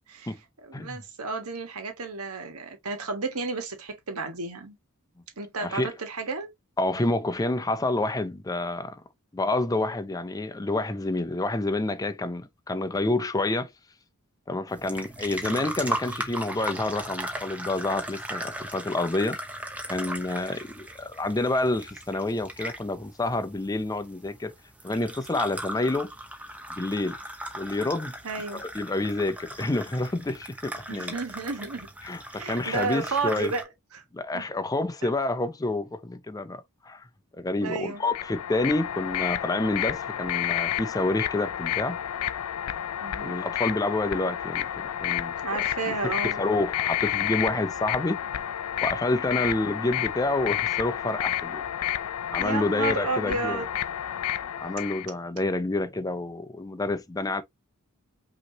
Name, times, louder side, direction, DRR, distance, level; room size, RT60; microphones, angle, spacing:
voice 1, 0.6-4.8 5.4-6.5 28.2-28.6 30.9-31.9 32.3-34.0 34.3-34.5 35.0-35.1 37.6-38.0 43.0-43.3 45.4-46.4 52.4-53.7, right 4 dB, 85° right, 1.4 m, -32 dB
voice 2, 5.6-5.9 6.8-9.0 9.3-13.7 14.5-19.4 19.9-24.5 24.8-26.1 26.7-27.2 27.5-28.1 28.5-31.1 32.0-33.5 34.1-37.1 37.4-42.0 43.2-45.3 45.9-48.2 48.8-51.6 52.3-53.6 54.6-57.4, left 2 dB, 15° left, 0.5 m, -28 dB
sound 1, 14.7-33.6, right 1 dB, 5° right, 0.9 m, -38 dB
sound 2, 38.0-55.1, left 11 dB, 80° left, 0.4 m, -30 dB
5.6 x 3.0 x 2.8 m
head